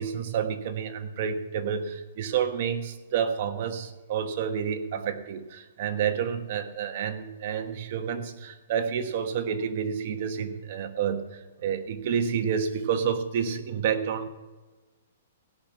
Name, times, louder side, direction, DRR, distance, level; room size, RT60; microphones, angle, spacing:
voice 1, 0.0-14.3, right 7 dB, 45° right, 6 dB, 1.2 m, -29 dB
17.0 x 6.0 x 7.0 m, 1.2 s
hypercardioid pair, 160°, 0 cm